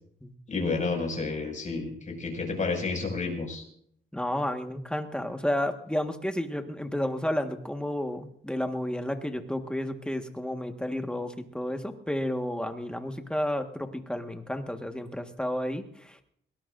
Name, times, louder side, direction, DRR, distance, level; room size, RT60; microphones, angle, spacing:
voice 1, 0.5-3.6, left 3 dB, 35° left, 1 dB, 6.2 m, -30 dB
voice 2, 4.1-16.2, left 1 dB, 5° left, 5 dB, 1.5 m, -31 dB
21.5 x 19.0 x 2.6 m, 0.66 s
cardioid pair, 100°, 21 cm